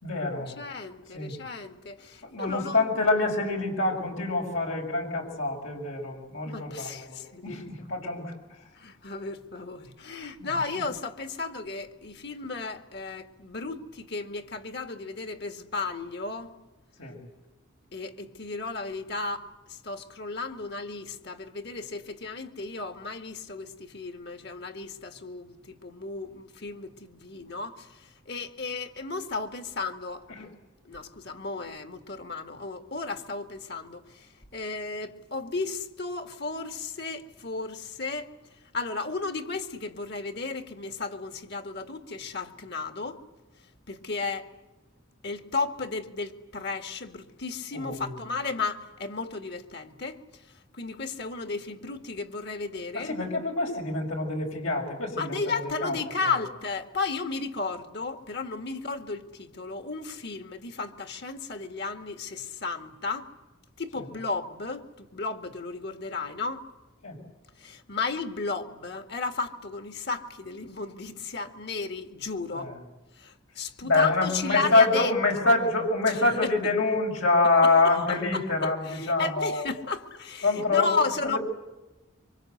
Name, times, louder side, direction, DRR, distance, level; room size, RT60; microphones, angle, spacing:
voice 1, 0.0-0.5 1.1-1.3 2.2-8.3 10.4-10.5 17.0-17.2 30.3-30.5 47.7-48.1 52.9-55.9 56.2-56.4 67.0-67.2 72.5-72.7 73.8-79.7 80.4-80.9 81.2-81.4, left 3 dB, 85° left, 6.2 m, -26 dB
voice 2, 0.6-2.9 6.5-7.9 8.8-16.5 17.9-30.5 30.9-38.3 38.7-43.2 43.9-44.5 45.2-50.4 50.7-53.1 55.1-63.3 63.8-66.7 67.6-72.7 73.2-75.2 75.4-75.5 76.1-76.7 77.6-77.7 78.1-81.4, left 4 dB, 55° left, 2.1 m, -34 dB
27.0 x 25.5 x 8.0 m
head